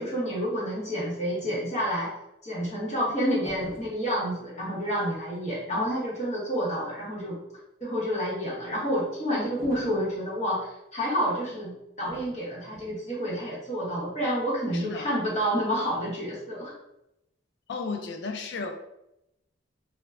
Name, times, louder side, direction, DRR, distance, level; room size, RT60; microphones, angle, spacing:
voice 1, 0.0-2.1 2.4-7.4 7.8-16.7, equal, 40° left, -7 dB, 0.9 m, -29 dB
sound 1, 3.4-4.0 9.6-10.1 12.0-12.4 12.7-13.0, equal, 15° right, 0.7 m, -44 dB
voice 2, 14.7-15.1 17.7-18.7, left 4 dB, 65° left, 5 dB, 0.4 m, -34 dB
2.1 x 2.1 x 3.5 m, 0.84 s
head